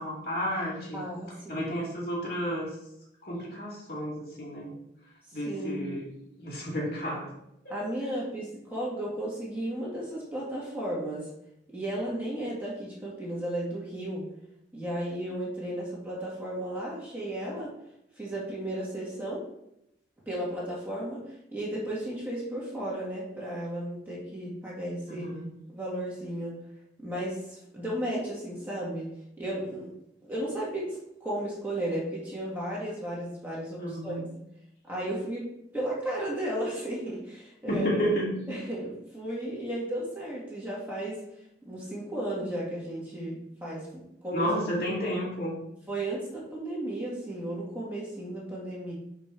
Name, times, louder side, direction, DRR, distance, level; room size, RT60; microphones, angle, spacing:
voice 1, 0.0-1.0 1.5-2.8 3.2-4.7 5.3-6.0 6.4-7.3 25.1-25.5 33.8-34.2 37.7-38.5 44.3-45.6, equal, 55° left, -5 dB, 2.5 m, -31 dB
voice 2, 0.9-1.7 5.4-5.9 7.7-11.3 11.7-14.3 14.7-17.7 18.1-19.5 20.3-25.3 25.7-26.6 27.0-29.9 30.2-34.2 34.9-35.5 35.7-37.9 38.5-44.5 45.9-48.9, right 1 dB, 10° right, -6 dB, 1.9 m, -34 dB
5.1 x 4.2 x 5.9 m, 0.79 s
head